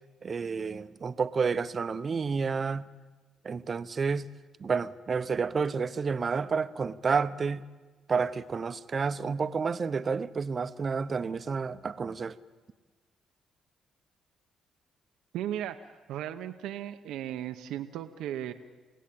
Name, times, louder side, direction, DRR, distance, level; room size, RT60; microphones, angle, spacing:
voice 1, 0.2-2.9 3.4-4.3 4.6-7.6 8.1-12.4, right 5 dB, 40° right, 0.9 m, -30 dB
voice 2, 15.3-18.5, right 11 dB, 90° right, 0.9 m, -36 dB
29.5 x 17.0 x 8.6 m
cardioid pair, 90°, 0 cm